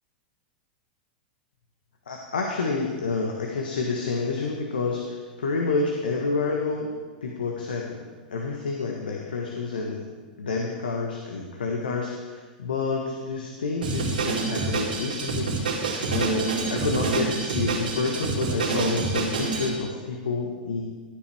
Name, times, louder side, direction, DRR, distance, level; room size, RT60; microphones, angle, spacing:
voice 1, 2.1-6.9 7.2-8.0 8.3-10.1 10.4-15.7 16.1-20.8, left 4 dB, 75° left, 0 dB, 1.3 m, -28 dB
Drum kit, 13.8-19.7, right 4 dB, 80° right, 3.4 m, -27 dB
14.5 x 9.3 x 3.5 m, 1.4 s
hypercardioid pair, 100°, 5 cm